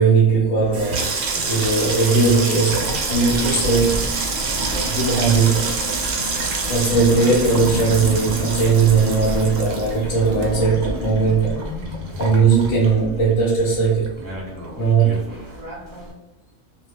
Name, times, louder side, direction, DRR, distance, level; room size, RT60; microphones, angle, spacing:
voice 1, 0.0-4.1 4.9-5.7 6.7-11.6 12.2-14.1 14.8-15.2, right 4 dB, 75° left, -5 dB, 0.9 m, -18 dB
Water tap faucet / Sink (filling or washing), 0.6-13.4 13.7-14.4 14.6-15.0, right 3 dB, 80° right, 0.9 m, -26 dB
Seamstress' Studio Rack Rollers, 2.8-16.1, left 1 dB, 30° right, 0.4 m, -33 dB
2.2 x 2.2 x 3.1 m, 0.95 s
omnidirectional pair, 1.3 m